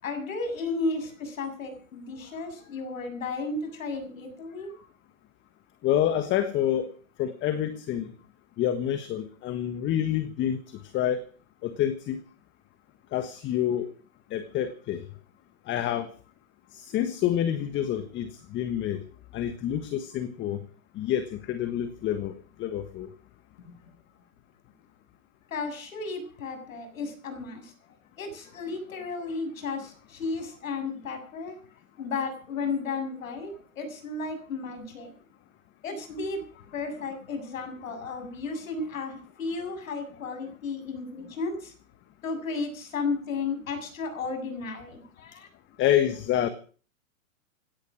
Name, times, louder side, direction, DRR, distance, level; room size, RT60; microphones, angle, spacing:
voice 1, 0.0-4.8 25.5-27.7 28.2-31.6 32.0-35.1 35.8-41.7 42.2-45.5, left 3 dB, 75° left, 7.3 m, -34 dB
voice 2, 5.8-6.9 7.2-8.1 8.6-11.3 11.6-12.2 13.1-13.9 14.3-15.0 15.7-16.1 16.7-19.0 19.3-20.6 20.9-23.1 45.8-46.5, left 10 dB, 30° left, 1.4 m, -28 dB
17.0 x 12.0 x 6.3 m
hypercardioid pair, 120°, 41 cm